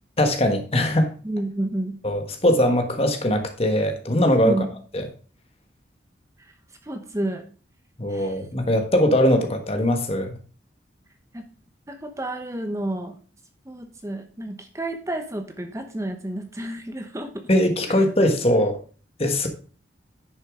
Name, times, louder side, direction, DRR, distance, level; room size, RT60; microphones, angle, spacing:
voice 1, 0.2-1.1 2.0-4.6 4.9-5.0 8.0-10.4 17.5-18.8 19.2-19.5, left 1 dB, 30° left, 6 dB, 1.4 m, -21 dB
voice 2, 1.2-2.0 4.3-4.7 6.4-6.5 6.8-7.5 8.1-8.5 11.3-11.4 11.9-13.2 13.7-17.5 18.0-18.1, right 1 dB, 15° right, 6 dB, 0.9 m, -30 dB
10.0 x 6.5 x 3.6 m, 0.38 s
head